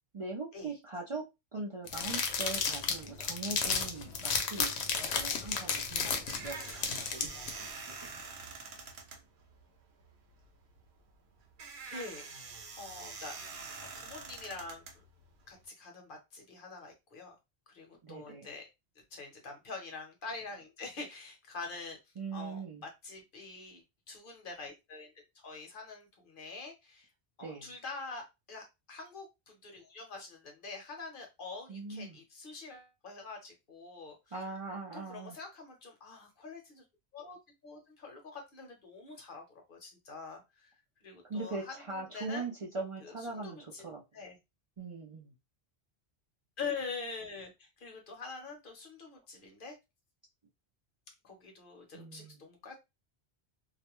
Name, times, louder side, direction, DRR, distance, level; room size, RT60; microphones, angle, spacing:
voice 1, 0.1-1.2 1.5-8.2 18.0-18.5 22.2-22.8 27.4-27.7 31.7-32.2 34.3-35.4 41.3-44.0 44.8-45.3 51.9-52.4, right 3 dB, 45° right, -3 dB, 0.4 m, -41 dB
sound 1, 1.9-7.5, left 5 dB, 90° left, 0.9 m, -32 dB
sound 2, 5.7-15.6, right 5 dB, 80° right, 0.9 m, -46 dB
voice 2, 11.9-14.8 15.5-17.4 17.7-18.7 19.1-22.0 22.3-27.1 27.4-34.2 34.9-36.8 37.1-37.4 37.6-39.4 39.7-40.7 41.0-42.5 43.0-44.4 46.6-49.8 51.2-52.8, left 4 dB, 55° left, 2 dB, 0.9 m, -45 dB
2.4 x 2.1 x 2.9 m, 0.24 s
omnidirectional pair, 1.1 m